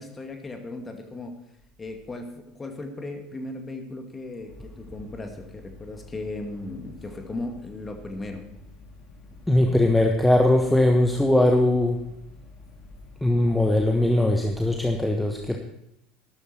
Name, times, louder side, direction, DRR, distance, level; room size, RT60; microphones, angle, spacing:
voice 1, 0.0-1.4 1.8-8.4, left 2 dB, 20° left, 5 dB, 2.2 m, -36 dB
sound 1, 4.5-14.0, left 3 dB, 45° left, 2.8 m, -48 dB
voice 2, 9.5-12.1 13.2-15.6, left 1 dB, 5° left, 3 dB, 1.2 m, -20 dB
12.5 x 12.5 x 4.5 m, 0.82 s
figure-of-eight pair, 70°, 0 cm